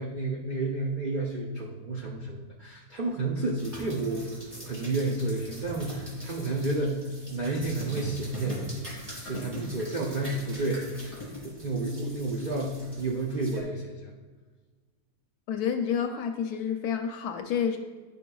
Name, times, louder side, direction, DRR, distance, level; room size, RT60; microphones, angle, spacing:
voice 1, 0.0-4.3 4.6-8.9 9.2-14.1, right 2 dB, 70° right, -3 dB, 0.4 m, -31 dB
sound 1, 3.6-13.6, right 1 dB, 15° right, 1.7 m, -41 dB
voice 2, 15.5-17.8, left 7 dB, 70° left, 5 dB, 1.0 m, -29 dB
9.7 x 5.4 x 2.3 m, 1.3 s
omnidirectional pair, 1.9 m